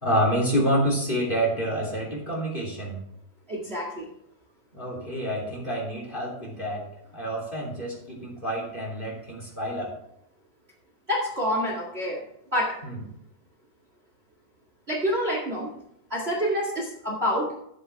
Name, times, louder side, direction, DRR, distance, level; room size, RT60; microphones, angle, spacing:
voice 1, 0.0-3.0 4.7-6.8 7.1-9.9 12.8-13.0, equal, 15° left, -2 dB, 2.5 m, -28 dB
voice 2, 3.5-4.1 11.1-12.2 12.5-12.8 14.9-15.7 16.1-17.5, equal, 70° right, -1 dB, 0.5 m, -27 dB
13.5 x 8.2 x 3.5 m, 0.76 s
omnidirectional pair, 4.9 m